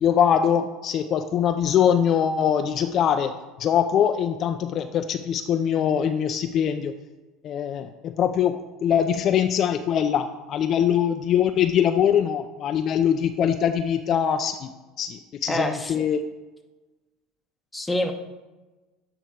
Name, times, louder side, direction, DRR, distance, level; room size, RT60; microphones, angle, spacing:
voice 1, 0.0-3.3 3.6-6.9 7.4-14.7 15.0-16.2, left 8 dB, 45° left, 8 dB, 0.3 m, -22 dB
voice 2, 15.5-16.0 17.7-18.1, left 1 dB, 10° left, 6 dB, 0.7 m, -26 dB
7.8 x 3.5 x 4.5 m, 1.2 s
supercardioid pair, 95°, 0 cm